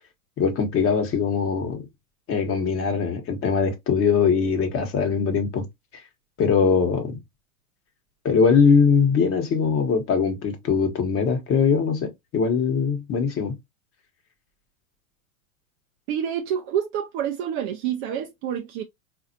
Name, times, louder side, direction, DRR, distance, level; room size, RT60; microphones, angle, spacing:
voice 1, 0.4-1.9 2.3-5.6 6.4-7.2 8.2-13.6, left 5 dB, 30° left, 1.1 m, -21 dB
voice 2, 16.1-18.8, right 9 dB, 35° right, 0.4 m, -28 dB
4.0 x 2.6 x 2.6 m
hypercardioid pair, 105°, 43 cm